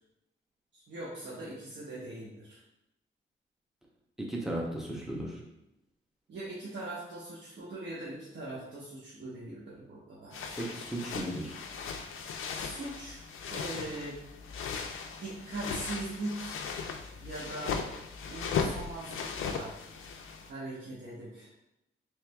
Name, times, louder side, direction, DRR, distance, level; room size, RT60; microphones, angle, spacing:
voice 1, 0.7-2.6 6.3-10.6 12.6-13.2 13.5-14.2 15.2-16.6 17.2-17.8 18.3-19.8 20.5-21.5, right 2 dB, 65° right, -8 dB, 1.0 m, -41 dB
voice 2, 4.2-5.4 10.6-11.6, right 1 dB, ahead, -2 dB, 0.6 m, -35 dB
sound 1, 10.3-20.5, left 5 dB, 85° left, 0.4 m, -37 dB
4.6 x 3.3 x 2.3 m, 0.84 s
wide cardioid pair, 160°, 21 cm